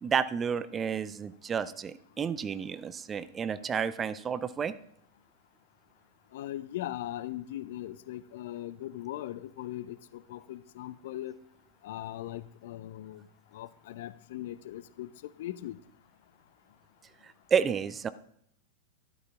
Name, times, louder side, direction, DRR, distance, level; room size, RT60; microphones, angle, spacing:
voice 1, 0.0-4.7 17.2-18.1, right 7 dB, 20° right, 14 dB, 0.4 m, -31 dB
voice 2, 6.3-11.4 11.8-13.3 13.5-15.8, left 13 dB, 55° left, 16 dB, 0.4 m, -39 dB
13.0 x 11.0 x 2.4 m, 0.71 s
figure-of-eight pair, 90°, 0 cm